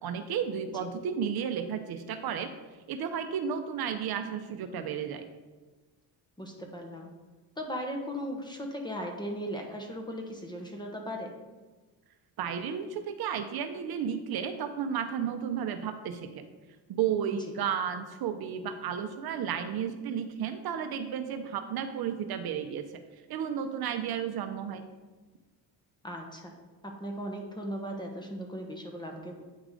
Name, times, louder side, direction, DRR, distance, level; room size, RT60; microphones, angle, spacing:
voice 1, 0.0-2.5 2.9-5.3 12.4-16.5 16.9-23.0 23.3-24.9, right 8 dB, 60° right, 8 dB, 0.6 m, -33 dB
voice 2, 6.4-7.1 7.6-11.3 26.0-26.5 26.8-29.4, equal, 10° left, 2 dB, 1.0 m, -37 dB
9.2 x 4.7 x 3.7 m, 1.3 s
cardioid pair, 130°, 43 cm